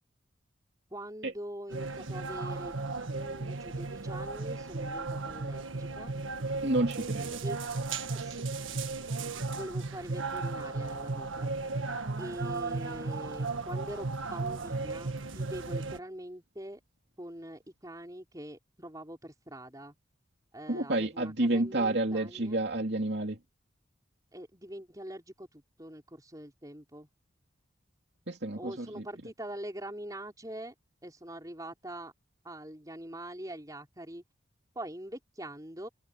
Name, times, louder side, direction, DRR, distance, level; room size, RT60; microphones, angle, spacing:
voice 1, 0.9-2.8 3.1-6.1 7.4-7.6 8.1-8.4 9.5-11.6 12.2-16.8 17.2-19.9 20.5-22.6 24.3-27.1 28.6-30.7 31.0-32.1 32.4-34.2 34.7-35.9, right 1 dB, 20° right, 4.6 m, -43 dB
sound 1, 1.7-16.0, right 3 dB, 80° right, 1.6 m, -35 dB
voice 2, 6.6-7.4 20.7-23.4 28.3-29.0, right 2 dB, 55° right, 2.9 m, -30 dB
head